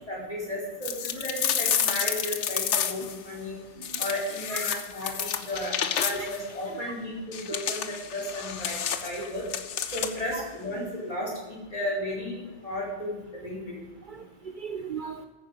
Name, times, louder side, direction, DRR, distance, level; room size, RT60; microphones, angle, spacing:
voice 1, 0.1-3.5 4.0-9.4 9.9-13.8, left 1 dB, 30° left, -3 dB, 4.5 m, -34 dB
sound 1, 0.8-3.2 3.8-6.4 7.3-10.3, left 8 dB, 85° left, 1.2 m, -30 dB
voice 2, 14.0-15.2, right 5 dB, 50° right, 8 dB, 0.7 m, -38 dB
14.5 x 9.5 x 5.3 m, 1.2 s
omnidirectional pair, 1.2 m